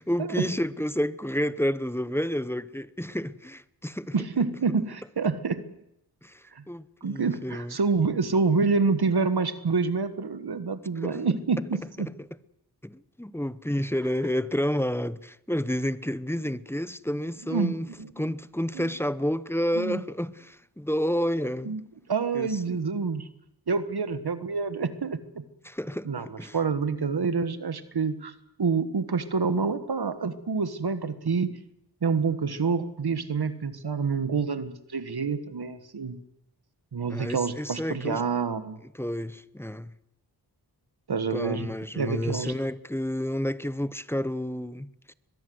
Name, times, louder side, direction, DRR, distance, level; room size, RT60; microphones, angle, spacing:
voice 1, 0.0-4.1 6.2-7.7 11.0-11.2 12.8-17.9 18.2-21.8 22.3-22.8 25.6-26.6 37.1-38.2 38.9-39.9 41.3-45.1, equal, 5° left, 0.8 m, -30 dB
voice 2, 4.1-5.7 6.5-6.6 7.0-12.1 17.5-17.7 18.0-18.3 18.7-18.9 19.7-20.0 21.6-21.8 22.1-23.3 23.7-25.4 26.0-28.3 28.6-31.6 32.0-36.2 36.9-38.8 41.1-42.5, right 4 dB, 70° right, 1.4 m, -27 dB
22.0 x 21.5 x 7.8 m
wide cardioid pair, 65°, 39 cm